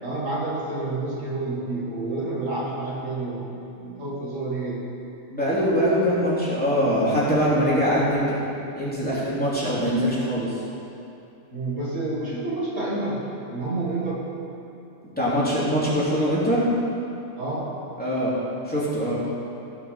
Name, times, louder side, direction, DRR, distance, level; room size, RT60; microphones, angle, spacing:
voice 1, 0.0-4.8 11.5-13.2 13.5-14.2 17.4-17.7, right 2 dB, 85° right, -5 dB, 2.5 m, -29 dB
voice 2, 5.3-8.4 8.8-10.5 15.2-16.7 18.0-18.3 18.7-19.2, equal, 5° left, -9 dB, 3.1 m, -22 dB
16.0 x 6.0 x 5.7 m, 2.8 s
omnidirectional pair, 1.3 m